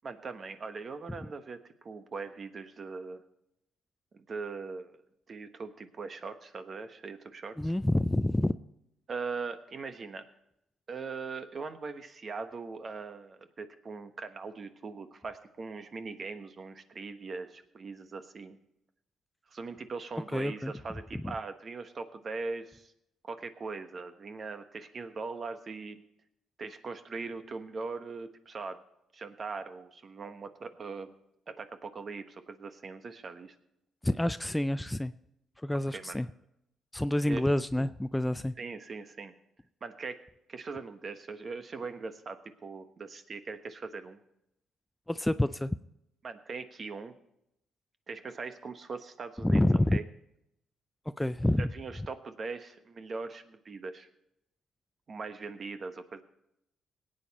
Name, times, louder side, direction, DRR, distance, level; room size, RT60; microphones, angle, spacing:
voice 1, 0.0-3.2 4.1-5.0 5.3-7.7 9.1-10.2 10.9-18.6 19.5-22.9 23.2-26.0 26.6-28.8 29.1-31.1 31.5-33.5 35.9-36.2 37.3-37.4 38.6-39.3 39.8-40.2 40.5-44.2 46.2-47.1 48.1-49.6 49.9-50.0 51.6-54.1 55.1-56.2, right 4 dB, 45° right, 9 dB, 1.2 m, -40 dB
voice 2, 7.6-8.6 20.3-20.7 21.1-21.3 34.0-35.1 35.6-36.3 36.9-38.5 45.1-45.7 49.4-50.0 51.2-51.7, left 1 dB, 10° left, 13 dB, 0.4 m, -28 dB
18.0 x 9.0 x 4.2 m, 0.80 s
cardioid pair, 90°, 0 cm